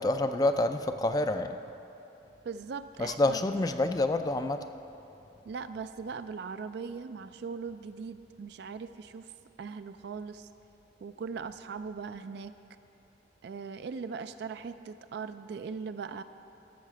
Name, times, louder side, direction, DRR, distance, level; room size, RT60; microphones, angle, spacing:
voice 1, 0.0-1.6 3.0-4.7, left 2 dB, 20° left, 8 dB, 0.3 m, -28 dB
voice 2, 2.4-3.4 5.5-9.3 9.6-10.5 11.0-12.5 13.4-16.2, right 5 dB, 60° right, 11 dB, 0.3 m, -39 dB
13.0 x 5.8 x 7.3 m, 2.9 s
head